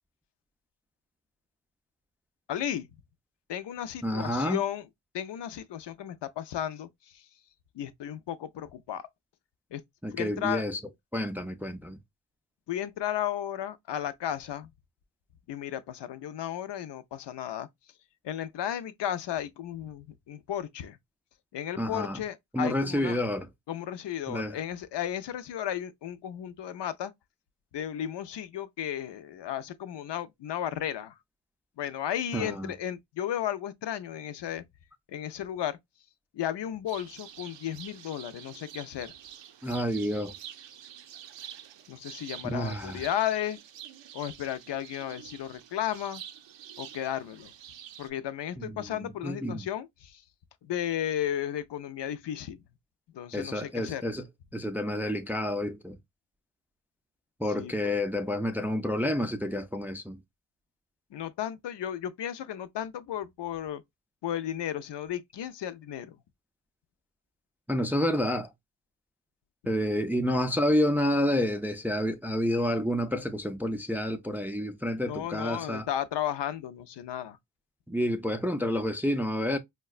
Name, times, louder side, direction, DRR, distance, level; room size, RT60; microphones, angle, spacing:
voice 1, 2.5-2.9 3.5-4.8 5.1-7.3 7.7-9.0 9.7-9.8 10.1-10.6 12.7-14.7 15.5-17.7 18.2-21.0 21.5-23.2 23.7-27.1 27.7-31.2 31.8-34.6 35.1-35.8 36.3-39.1 41.9-43.6 44.1-46.2 46.8-47.5 48.0-50.2 50.6-52.6 53.1-54.0 57.5-57.9 61.1-63.8 64.2-66.2 75.0-77.4, left 10 dB, 75° left, 0.5 m, -34 dB
voice 2, 4.0-4.6 10.0-10.8 11.1-12.0 21.8-22.2 22.5-23.5 24.3-24.6 32.3-32.7 39.6-40.3 42.4-43.0 48.6-49.7 53.3-54.3 54.5-56.0 57.4-60.2 67.7-68.5 69.7-75.9 77.9-79.6, equal, 5° right, 0.3 m, -29 dB
sound 1, 36.9-48.1, right 10 dB, 85° right, 0.6 m, -47 dB
4.7 x 2.2 x 2.3 m
cardioid pair, 80°, 42 cm